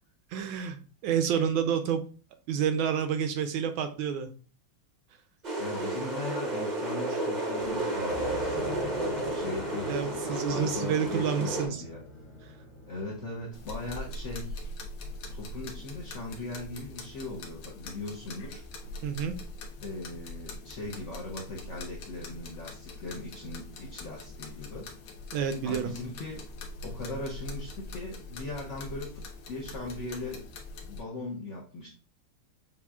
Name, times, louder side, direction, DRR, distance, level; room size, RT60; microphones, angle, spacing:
voice 1, 0.3-2.0 2.5-4.3 9.9-11.8 19.0-19.4 25.3-25.9, right 7 dB, 75° right, 8 dB, 1.2 m, -29 dB
sound 1, 5.4-11.7, right 2 dB, 45° right, 0.5 m, -32 dB
voice 2, 5.6-12.0 12.9-14.6 15.3-18.6 19.8-24.9 25.6-26.4 26.8-29.2 29.5-30.4 30.8-31.9, left 2 dB, 60° left, -3 dB, 0.7 m, -39 dB
sound 2, 7.6-14.0, left 1 dB, 30° left, 1.1 m, -42 dB
sound 3, 13.5-31.0, left 2 dB, 85° left, 1.7 m, -42 dB
7.1 x 2.4 x 2.3 m, 0.37 s
omnidirectional pair, 2.4 m